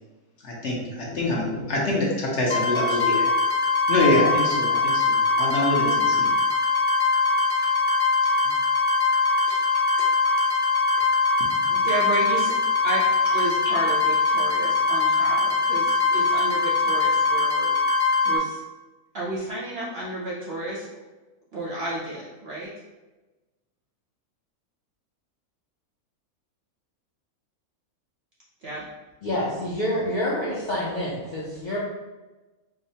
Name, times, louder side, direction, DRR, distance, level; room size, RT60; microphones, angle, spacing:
voice 1, 0.4-3.3 3.9-6.3 7.5-7.7 8.4-8.5 9.5-9.6 11.5-11.7, left 1 dB, 55° left, -4 dB, 0.9 m, -25 dB
sound 1, 2.5-18.4, left 3 dB, 20° left, 0.7 m, -22 dB
voice 2, 11.7-12.5 12.8-13.0 13.3-17.7 18.2-18.6 19.1-20.9 21.5-22.7 28.6-28.8, right 1 dB, 60° right, -5 dB, 0.7 m, -31 dB
voice 3, 29.2-31.8, left 1 dB, 75° left, -7 dB, 0.4 m, -27 dB
4.9 x 2.1 x 2.7 m, 1.2 s
omnidirectional pair, 1.6 m